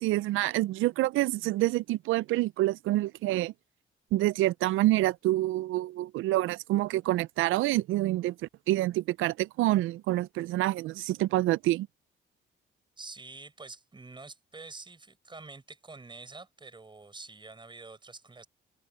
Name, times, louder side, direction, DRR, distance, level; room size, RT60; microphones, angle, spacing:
voice 1, 0.0-3.5 4.1-8.3 8.7-11.9, right 16 dB, 85° right, 0.5 m, -27 dB
voice 2, 13.0-18.5, right 3 dB, 25° right, 6.3 m, -47 dB
cardioid pair, 90°, 20 cm